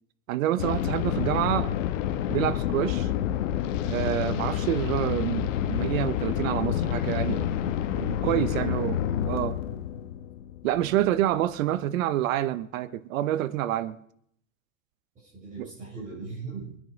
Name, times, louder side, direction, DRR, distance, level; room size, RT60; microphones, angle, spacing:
voice 1, 0.3-1.7 2.3-3.1 3.8-7.5 7.9-9.0 9.3-9.5 10.6-14.0 15.6-15.7, right 13 dB, 85° right, 1.1 m, -27 dB
sound 1, 0.6-11.3, left 10 dB, 70° left, 1.4 m, -28 dB
voice 2, 8.0-8.7 10.8-11.0 15.2-16.7, right 4 dB, 20° right, 7.4 m, -40 dB
23.0 x 10.0 x 5.2 m
supercardioid pair, 175°, 39 cm